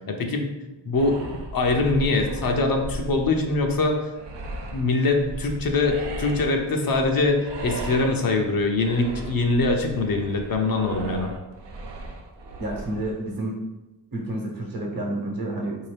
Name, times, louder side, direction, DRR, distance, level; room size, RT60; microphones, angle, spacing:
voice 1, 0.1-0.5 0.9-4.1 4.7-11.3, left 3 dB, 55° left, 3 dB, 0.6 m, -23 dB
sound 1, 0.9-13.1, right 2 dB, 75° right, 0.7 m, -36 dB
voice 2, 12.6-13.6 14.1-15.9, right 1 dB, 50° right, 0 dB, 1.1 m, -30 dB
3.7 x 2.8 x 3.3 m, 1.0 s
cardioid pair, 65°, 43 cm